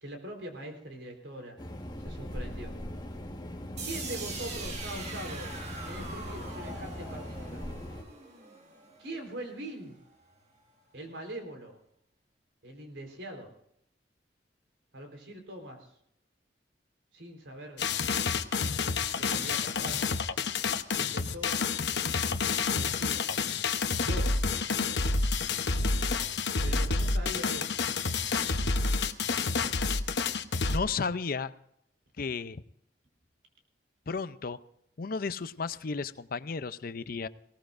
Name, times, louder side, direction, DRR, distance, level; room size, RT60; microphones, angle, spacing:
voice 1, 0.0-1.6 2.0-2.7 3.8-5.5 5.8-7.7 9.0-10.0 10.9-11.8 12.6-13.5 14.9-15.9 17.1-17.8 19.1-20.0 21.0-21.6 22.7-23.3 24.0-25.0 26.6-27.7, right 1 dB, 90° right, 3 dB, 3.9 m, -42 dB
sound 1, 1.6-8.0, left 1 dB, 25° left, 1.5 m, -40 dB
sound 2, 3.8-9.7, right 3 dB, 40° right, 2.0 m, -42 dB
sound 3, 17.8-30.8, left 4 dB, 70° left, 0.9 m, -29 dB
voice 2, 30.7-31.5 32.2-32.6 34.1-34.6 35.0-37.3, left 5 dB, 55° left, 13 dB, 0.6 m, -33 dB
20.5 x 18.0 x 2.6 m, 0.76 s
head